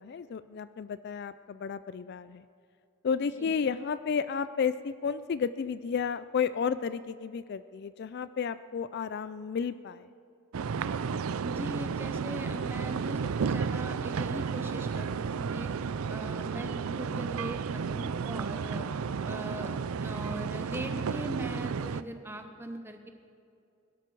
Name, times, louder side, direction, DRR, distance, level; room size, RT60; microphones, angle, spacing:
voice 1, 0.0-2.5 3.0-10.1, left 6 dB, 50° left, 14 dB, 0.3 m, -32 dB
sound 1, 10.5-22.0, right 5 dB, 75° right, 0.4 m, -32 dB
voice 2, 11.4-15.7 16.1-18.9 19.2-23.1, right 1 dB, 10° right, 5 dB, 0.9 m, -40 dB
21.0 x 12.0 x 4.6 m, 2.5 s
head